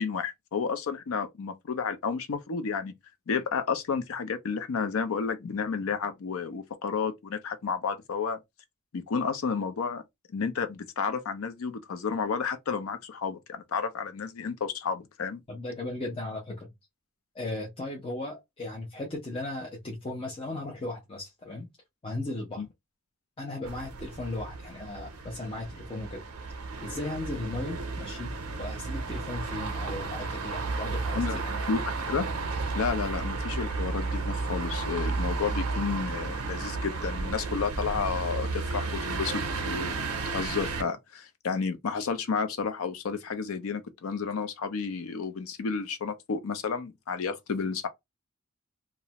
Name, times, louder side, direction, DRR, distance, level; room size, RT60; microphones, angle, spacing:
voice 1, 0.0-2.9 3.3-8.4 8.9-10.0 10.3-15.4 22.6-22.7 31.1-31.4 31.7-32.3 32.7-47.9, left 5 dB, 70° left, 0.5 m, -31 dB
voice 2, 15.5-16.7 17.3-21.7 22.0-22.6 23.4-26.2 26.8-28.3 28.6-31.7, left 2 dB, 25° left, 0.5 m, -36 dB
sound 1, 23.6-40.8, right 3 dB, 90° right, 0.6 m, -33 dB
2.4 x 2.0 x 2.8 m
head